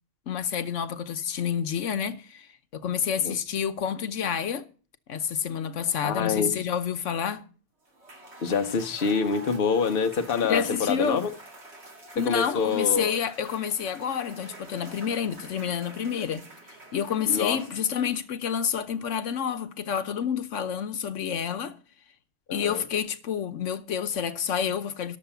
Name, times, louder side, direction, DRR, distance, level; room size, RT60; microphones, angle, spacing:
voice 1, 0.3-2.5 2.7-4.6 5.1-7.4 10.4-11.2 12.1-16.5 16.9-21.7 22.5-25.2, left 8 dB, 85° left, 1.2 m, -29 dB
voice 2, 6.0-6.6 8.4-11.3 12.2-13.2 17.3-17.6 22.5-22.8, left 5 dB, 50° left, 1.1 m, -26 dB
Cheering / Applause / Crowd, 7.9-18.3, right 2 dB, 60° right, 2.5 m, -47 dB
12.0 x 7.0 x 6.8 m
omnidirectional pair, 1.2 m